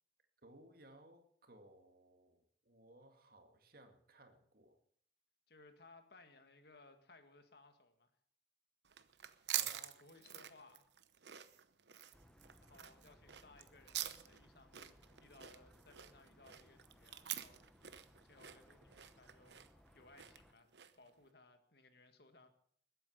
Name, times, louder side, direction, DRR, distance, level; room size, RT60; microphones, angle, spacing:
voice 1, 0.4-4.8 9.5-9.8, right 1 dB, 55° right, 5 dB, 2.2 m, -62 dB
voice 2, 5.5-8.1 9.7-10.9 12.6-17.7 18.2-19.6 19.9-22.5, left 2 dB, 60° left, 7 dB, 1.8 m, -63 dB
eating chips, 8.8-21.1, right 12 dB, 75° right, 0.9 m, -46 dB
sound 1, 12.1-20.5, equal, 5° left, 0.8 m, -66 dB
20.5 x 9.0 x 6.6 m, 0.63 s
head